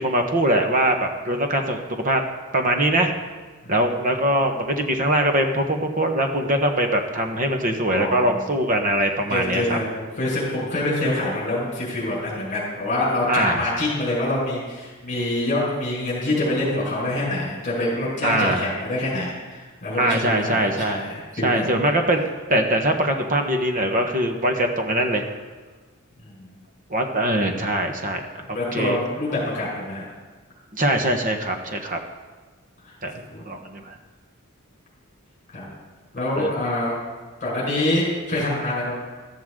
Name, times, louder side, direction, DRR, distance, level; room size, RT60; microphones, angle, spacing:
voice 1, 0.0-2.2 2.5-3.1 3.7-9.8 13.3-13.6 18.2-18.7 20.0-21.1 21.4-25.2 26.9-28.3 28.7-29.0 30.7-32.0 33.0-33.1 33.5-34.0 36.4-36.5, right 1 dB, 40° right, 4 dB, 1.3 m, -22 dB
voice 2, 3.6-4.1 7.9-8.6 9.3-21.7 26.2-26.6 28.5-30.0 33.3-33.4 35.5-35.8 36.1-37.0 37.4-38.9, left 1 dB, 35° left, -6 dB, 5.2 m, -26 dB
14.0 x 13.5 x 3.8 m, 1.3 s
head